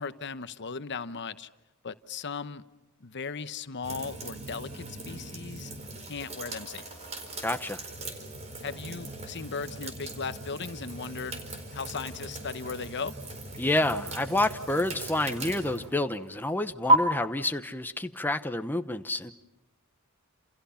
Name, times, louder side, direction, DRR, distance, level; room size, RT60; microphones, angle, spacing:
voice 1, 0.0-1.5 1.8-2.6 3.0-5.7 6.0-6.8 8.6-11.4 11.7-13.1, left 5 dB, 55° left, 12 dB, 0.9 m, -37 dB
sound 1, 3.8-16.9, right 2 dB, 30° right, 4.4 m, -35 dB
voice 2, 7.4-7.8 13.6-19.3, left 1 dB, 10° left, 8 dB, 1.0 m, -29 dB
30.0 x 28.0 x 5.7 m, 0.98 s
head